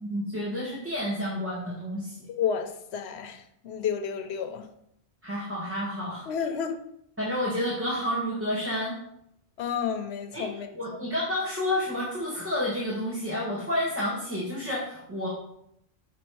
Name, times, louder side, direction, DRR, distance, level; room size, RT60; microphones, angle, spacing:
voice 1, 0.0-2.3 5.2-6.3 7.2-9.0 10.3-15.3, left 1 dB, 10° right, -6 dB, 1.1 m, -30 dB
voice 2, 2.3-4.7 6.3-6.8 9.6-11.0, left 7 dB, 70° left, 7 dB, 0.9 m, -31 dB
6.1 x 3.7 x 4.6 m, 0.74 s
omnidirectional pair, 1.2 m